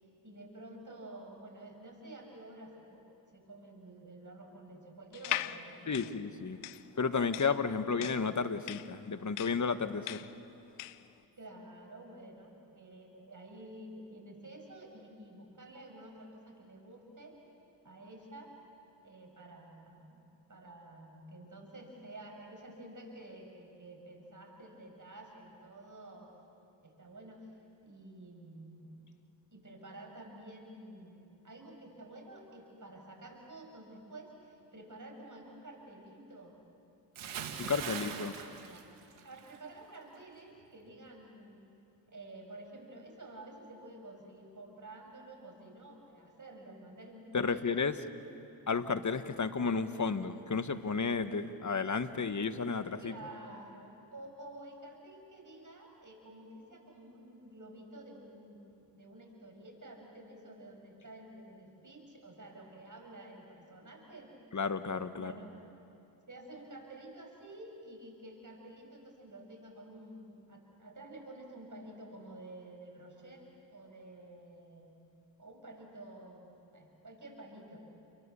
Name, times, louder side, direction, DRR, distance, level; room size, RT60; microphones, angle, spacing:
voice 1, 0.2-6.2 7.8-8.1 11.4-17.4 17.8-18.5 19.0-26.3 26.8-27.5 27.8-28.9 29.5-36.5 37.2-38.9 39.2-41.6 42.1-47.7 53.0-64.3 65.2-65.5 66.3-74.9 75.4-77.8, right 1 dB, 40° right, 2 dB, 6.7 m, -50 dB
sound 1, 5.1-11.1, left 15 dB, 90° left, 0.7 m, -40 dB
voice 2, 5.9-6.6 7.0-10.2 37.6-38.3 47.3-48.0 48.7-53.1 64.5-65.3, left 5 dB, 35° left, 10 dB, 1.6 m, -32 dB
Bathtub (filling or washing) / Splash splatter, 37.1-39.6 39.9-40.2, right 7 dB, 80° right, 1.9 m, -41 dB
29.5 x 23.0 x 7.1 m, 2.7 s
supercardioid pair, 40°, 49 cm